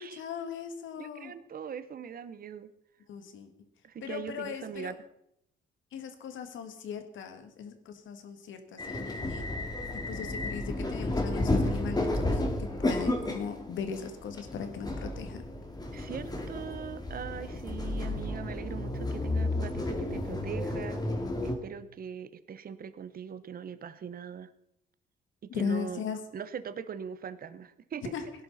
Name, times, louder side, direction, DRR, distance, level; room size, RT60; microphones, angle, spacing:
voice 1, 0.0-1.3 3.1-3.5 4.0-4.9 5.9-9.5 9.9-15.4 25.5-26.2 28.1-28.2, left 6 dB, 75° left, 8 dB, 1.9 m, -38 dB
voice 2, 1.0-2.7 3.8-5.0 15.9-21.0 21.4-24.5 25.4-26.0 26.3-28.1, right 7 dB, 45° right, 13 dB, 0.9 m, -41 dB
sound 1, 8.8-21.5, left 2 dB, 20° left, 2.4 m, -32 dB
17.0 x 11.0 x 4.1 m, 0.75 s
cardioid pair, 90°, 20 cm